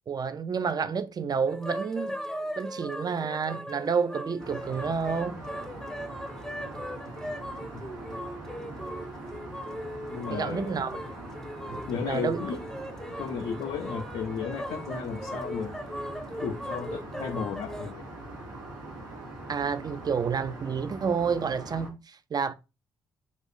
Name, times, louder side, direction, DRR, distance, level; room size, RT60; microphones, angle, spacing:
voice 1, 0.1-2.1 2.6-5.4 10.3-11.0 11.7-12.4 19.5-22.5, right 6 dB, 35° right, 0.4 m, -29 dB
sound 1, 1.5-17.9, equal, 5° left, 0.6 m, -39 dB
Aircraft, 4.4-21.9, right 2 dB, 90° right, 1.1 m, -42 dB
voice 2, 10.1-10.8 11.9-12.7 13.2-15.8 16.4-18.1, left 6 dB, 65° left, 0.5 m, -34 dB
3.0 x 2.5 x 3.7 m
hypercardioid pair, 40°, 11 cm